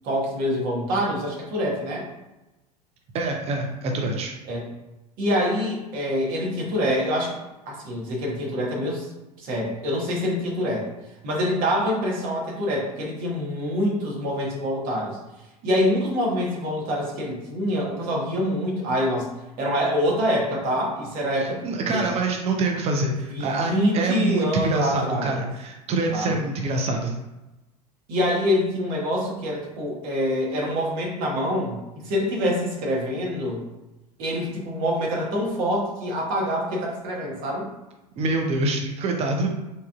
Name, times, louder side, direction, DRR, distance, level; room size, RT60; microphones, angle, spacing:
voice 1, 0.0-2.0 4.5-4.7 5.2-7.4 7.7-9.1 9.4-10.9 11.2-15.2 15.6-19.3 19.6-21.6 21.9-22.1 23.3-25.4 26.1-26.4 28.1-33.6 34.2-37.7, equal, 45° right, -2 dB, 1.3 m, -25 dB
voice 2, 3.1-4.3 21.6-27.2 38.2-39.5, right 2 dB, 30° right, 2 dB, 0.6 m, -25 dB
4.1 x 3.7 x 2.4 m, 1.0 s
figure-of-eight pair, 75°, 20 cm